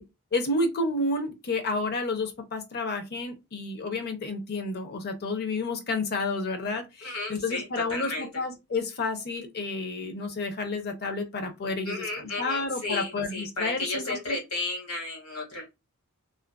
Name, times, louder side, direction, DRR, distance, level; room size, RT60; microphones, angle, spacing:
voice 1, 0.3-14.4, left 3 dB, 45° left, 0.5 m, -30 dB
voice 2, 7.0-8.3 11.8-15.6, left 2 dB, 90° left, 1.4 m, -33 dB
2.4 x 2.2 x 2.2 m
head